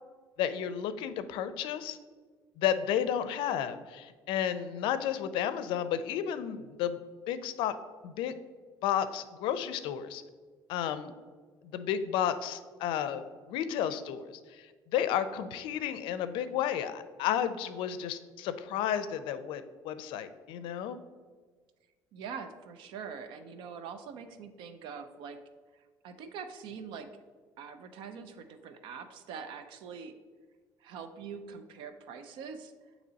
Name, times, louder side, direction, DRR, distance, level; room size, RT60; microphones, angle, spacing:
voice 1, 0.4-2.0 2.6-7.0 7.3-7.8 8.0-8.3 8.8-10.2 10.7-11.1 11.6-21.0, left 9 dB, 85° left, 12 dB, 0.4 m, -32 dB
voice 2, 22.1-25.4 25.7-27.1 27.6-30.1 30.8-32.7, right 6 dB, 75° right, 9 dB, 0.5 m, -44 dB
8.5 x 3.0 x 4.0 m, 1.5 s
cardioid pair, 155°, 8 cm